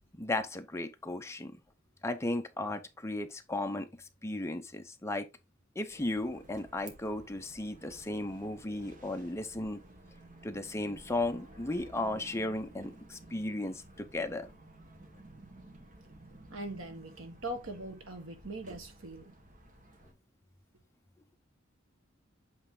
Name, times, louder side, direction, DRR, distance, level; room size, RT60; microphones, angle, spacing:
voice 1, 0.2-1.5 2.0-3.9 4.2-5.3 5.8-9.8 10.4-14.5, left 2 dB, 15° left, 0.7 m, -35 dB
sound 1, 5.9-20.1, right 1 dB, 40° right, 1.5 m, -54 dB
voice 2, 16.5-19.3, right 1 dB, 80° right, 1.6 m, -41 dB
8.1 x 3.4 x 3.8 m
head